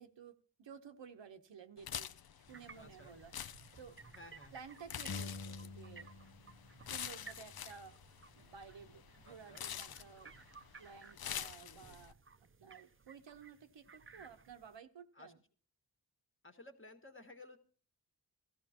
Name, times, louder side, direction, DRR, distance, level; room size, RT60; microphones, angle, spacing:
voice 1, 0.0-3.3 3.8-4.0 4.5-6.1 6.8-7.9 8.3-10.3 10.8-12.2 12.6-15.4, right 6 dB, 75° right, 8 dB, 1.0 m, -54 dB
sound 1, 1.8-12.1, left 9 dB, 55° left, 0.6 m, -47 dB
sound 2, 2.5-14.8, right 4 dB, 30° right, 0.6 m, -59 dB
voice 2, 2.7-3.1 4.1-4.6 9.2-9.6 11.6-12.0 15.1-15.3 16.4-17.6, left 1 dB, 30° left, 5 dB, 1.6 m, -56 dB
sound 3, 5.1-6.6 6.8-8.6, left 3 dB, 70° left, 1.3 m, -49 dB
16.5 x 14.0 x 2.9 m, 0.42 s
cardioid pair, 60°, 44 cm